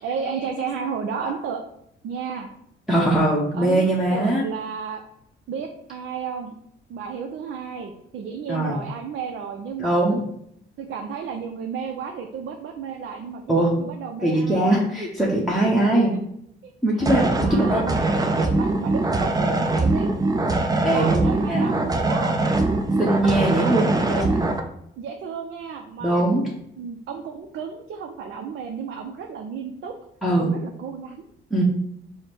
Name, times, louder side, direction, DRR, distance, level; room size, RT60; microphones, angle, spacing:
voice 1, 0.0-1.6 2.0-2.5 3.6-5.0 5.5-6.5 6.9-10.2 10.8-14.8 15.6-16.0 16.6-16.7 17.4-18.0 18.4-20.1 20.9-22.3 23.6-23.9 25.0-29.9 30.4-31.2, right 6 dB, 70° right, 3 dB, 0.5 m, -33 dB
voice 2, 2.9-4.5 8.5-8.8 9.8-10.2 13.5-13.8 14.2-16.1 16.8-17.8 20.8-21.2 21.5-21.6 23.0-24.4 26.0-26.5 30.2-30.6 31.5-31.6, right 1 dB, ahead, -5 dB, 0.8 m, -21 dB
sound 1, 17.0-24.6, right 2 dB, 20° right, 0.5 m, -22 dB
4.8 x 2.1 x 4.5 m, 0.73 s
cardioid pair, 90°, 20 cm